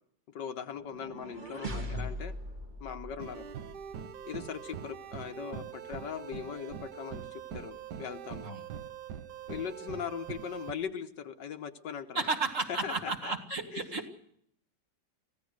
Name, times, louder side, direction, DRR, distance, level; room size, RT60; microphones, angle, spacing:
voice 1, 0.3-2.3 2.8-3.5 4.2-8.5 9.5-12.2 12.7-13.3 13.7-14.0, left 7 dB, 70° left, 9 dB, 1.7 m, -40 dB
sound 1, 0.8-3.9, equal, 25° right, 1.7 m, -40 dB
sound 2, 3.2-10.7, right 8 dB, 65° right, 1.5 m, -43 dB
voice 2, 12.1-14.1, right 3 dB, 40° right, 5 dB, 2.2 m, -33 dB
24.5 x 16.0 x 6.5 m, 0.70 s
omnidirectional pair, 2.1 m